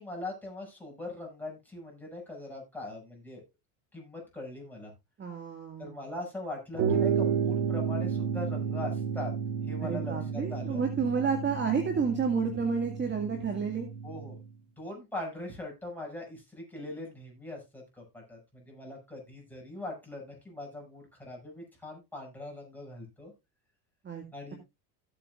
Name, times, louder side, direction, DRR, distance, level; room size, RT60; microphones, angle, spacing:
voice 1, 0.0-3.4 3.9-4.9 5.8-9.3 9.6-10.8 14.0-14.4 14.8-23.3 24.3-24.6, left 2 dB, 5° left, -1 dB, 6.8 m, -41 dB
voice 2, 5.2-6.0 9.8-13.9 24.0-24.2, right 5 dB, 25° right, 4 dB, 2.1 m, -30 dB
sound 1, 6.7-14.5, right 7 dB, 75° right, 3.4 m, -32 dB
15.5 x 8.5 x 2.5 m, 0.24 s
supercardioid pair, 115°, 46 cm